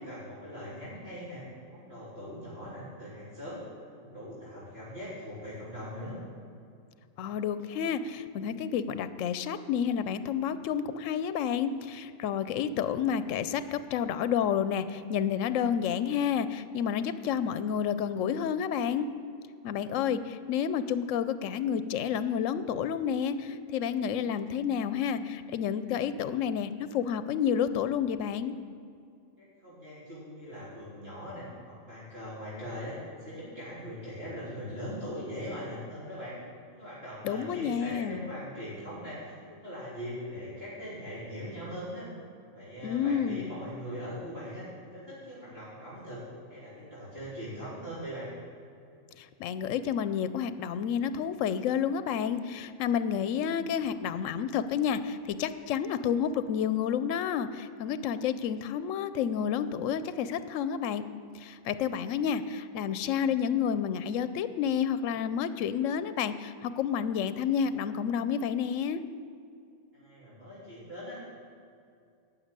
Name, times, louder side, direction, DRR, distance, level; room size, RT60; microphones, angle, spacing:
voice 1, 0.1-3.6 4.0-6.2 29.4-36.3 36.8-42.1 42.5-44.6 44.9-46.2 46.5-48.3 69.9-71.2, equal, 50° right, -11 dB, 3.7 m, -41 dB
voice 2, 7.2-19.1 19.6-28.5 37.2-38.3 42.8-43.5 49.2-61.0 61.3-69.0, left 8 dB, 80° left, 13 dB, 0.9 m, -30 dB
12.0 x 6.2 x 8.8 m, 2.4 s
omnidirectional pair, 1.3 m